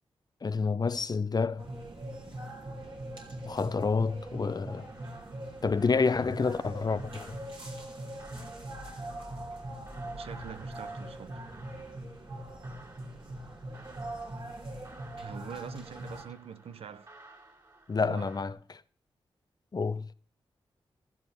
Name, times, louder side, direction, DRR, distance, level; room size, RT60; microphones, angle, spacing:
voice 1, 0.4-1.6 3.4-4.9 5.6-7.4 17.9-18.5 19.7-20.1, left 4 dB, 45° left, 0.6 m, -28 dB
sound 1, 1.6-16.2, right 1 dB, 60° right, 3.2 m, -41 dB
sound 2, 4.7-18.5, right 2 dB, 40° right, 3.1 m, -55 dB
voice 2, 10.1-11.4 15.2-17.1 18.0-18.3, right 7 dB, 85° right, 0.7 m, -44 dB
15.5 x 13.5 x 3.5 m
cardioid pair, 60°, 10 cm